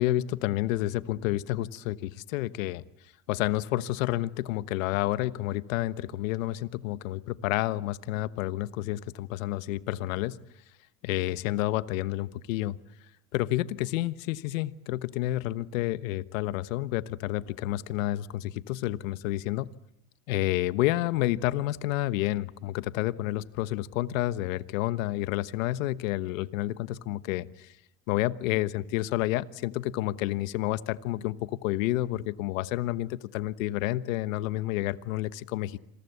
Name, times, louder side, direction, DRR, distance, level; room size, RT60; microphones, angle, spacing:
voice 1, 0.0-2.8 3.3-10.4 11.0-12.8 13.3-19.7 20.3-27.7 28.1-35.8, left 15 dB, 80° left, 15 dB, 1.2 m, -30 dB
27.5 x 22.5 x 8.2 m, 0.81 s
supercardioid pair, 105°, 39 cm